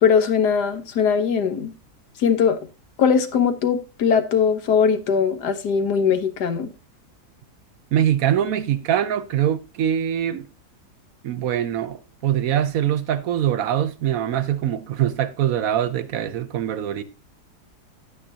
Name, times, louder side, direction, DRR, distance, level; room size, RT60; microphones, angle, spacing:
voice 1, 0.0-1.7 2.2-2.6 3.0-6.7, left 6 dB, 80° left, 1.6 m, -20 dB
voice 2, 7.9-10.5 11.2-17.0, right 10 dB, 65° right, 1.0 m, -23 dB
9.3 x 9.0 x 2.7 m
omnidirectional pair, 1.7 m